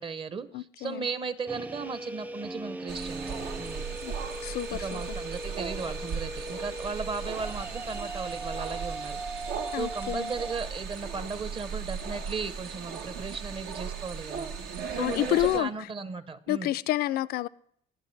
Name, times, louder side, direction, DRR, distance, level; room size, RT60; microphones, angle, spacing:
voice 1, 0.0-3.9 4.7-9.5 9.8-14.5 14.9-16.7, right 5 dB, 30° right, 0.7 m, -36 dB
voice 2, 0.5-1.1 4.0-4.1 4.4-5.0 9.7-10.3 15.0-15.7 16.5-17.5, left 15 dB, 65° left, 0.4 m, -29 dB
sound 1, 1.5-10.6, right 2 dB, 10° right, 0.3 m, -39 dB
sound 2, 2.9-15.6, right 6 dB, 85° right, 1.2 m, -37 dB
20.5 x 7.3 x 3.2 m
cardioid pair, 110°, 17 cm